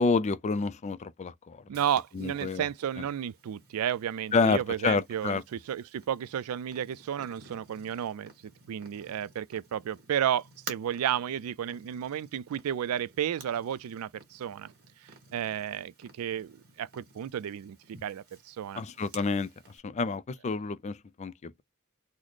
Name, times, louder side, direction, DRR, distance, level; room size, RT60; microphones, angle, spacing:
voice 1, 0.0-1.6 2.1-2.6 4.3-5.4 18.8-19.5 19.8-21.6, left 4 dB, 30° left, 0.3 m, -28 dB
Purr, 1.7-19.8, right 4 dB, 50° right, 1.5 m, -52 dB
voice 2, 1.7-14.7 15.3-17.8 18.0-18.8, right 9 dB, 90° right, 0.3 m, -32 dB
3.9 x 2.0 x 3.1 m
head